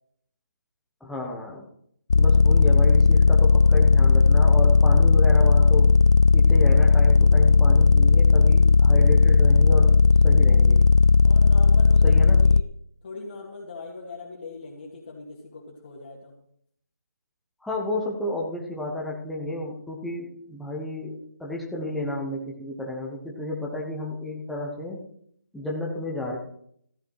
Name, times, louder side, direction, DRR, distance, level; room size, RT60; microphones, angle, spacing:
voice 1, 1.0-1.6 2.1-5.9 6.3-9.9 10.2-10.8 12.0-12.4 17.6-25.0 25.5-26.4, left 1 dB, ahead, -3 dB, 1.0 m, -32 dB
sound 1, 2.1-12.6, left 4 dB, 75° left, 0.4 m, -16 dB
voice 2, 11.2-12.7 13.0-16.4, left 3 dB, 35° left, -3 dB, 2.1 m, -41 dB
14.0 x 9.4 x 4.7 m, 0.67 s
figure-of-eight pair, 170°, 9 cm